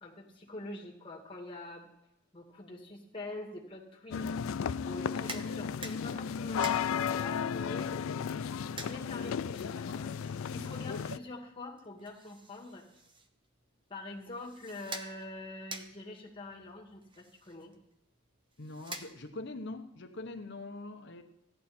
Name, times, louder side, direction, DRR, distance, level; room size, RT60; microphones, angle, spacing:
voice 1, 0.0-1.9 2.3-4.3 4.8-8.0 8.6-12.8 13.9-17.7, left 2 dB, 25° left, 2.0 m, -45 dB
sound 1, 4.1-11.2, left 7 dB, 75° left, 0.4 m, -34 dB
sound 2, 4.9-19.6, right 2 dB, 25° right, 0.8 m, -49 dB
sound 3, 5.9-11.2, right 2 dB, 50° right, 0.9 m, -53 dB
voice 2, 18.6-21.2, left 2 dB, 55° left, 0.9 m, -43 dB
15.5 x 11.5 x 4.3 m
head